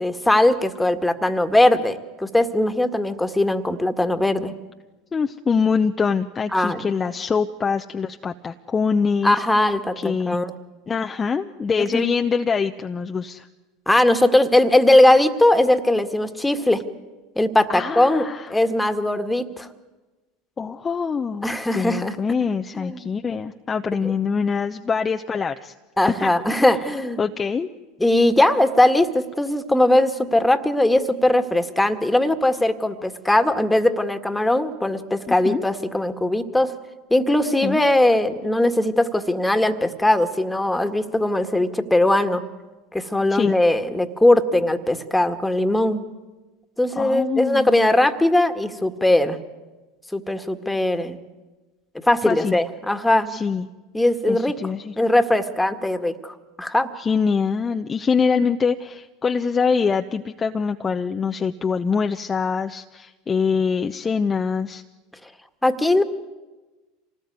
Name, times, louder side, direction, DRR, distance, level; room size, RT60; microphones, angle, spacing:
voice 1, 0.0-4.5 6.5-6.9 9.2-10.5 11.8-12.1 13.9-16.8 17.4-19.7 21.4-22.2 22.7-23.1 24.0-24.1 26.0-27.2 28.0-36.8 37.1-42.4 42.9-46.0 46.8-49.4 50.1-51.2 52.0-53.4 53.9-54.6 55.0-56.9 65.6-66.0, left 1 dB, 5° left, 8 dB, 1.9 m, -20 dB
voice 2, 5.1-9.4 10.0-10.4 10.9-13.5 17.7-18.5 20.6-21.5 21.7-25.7 26.1-26.6 27.2-27.7 35.3-35.6 37.6-37.8 43.3-43.5 47.0-47.8 52.2-52.6 53.3-53.7 54.3-54.9 57.0-64.8, left 5 dB, 25° left, 5 dB, 0.9 m, -24 dB
26.5 x 19.0 x 9.5 m, 1.2 s
hypercardioid pair, 80°, 0 cm